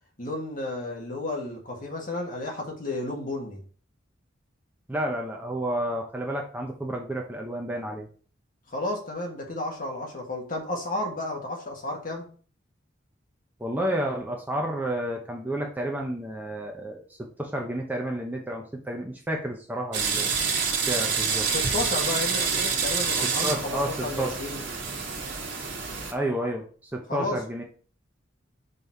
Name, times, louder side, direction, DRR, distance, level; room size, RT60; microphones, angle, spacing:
voice 1, 0.2-3.6 8.7-12.2 21.5-24.7 27.1-27.4, left 2 dB, 45° left, 0 dB, 1.7 m, -32 dB
voice 2, 4.9-8.1 13.6-20.3 20.7-21.5 23.4-24.3 26.1-26.6 26.9-27.6, right 1 dB, 10° right, 0 dB, 0.8 m, -30 dB
sound 1, 19.9-26.1, right 5 dB, 60° right, 1.6 m, -27 dB
5.4 x 4.1 x 4.6 m, 0.42 s
head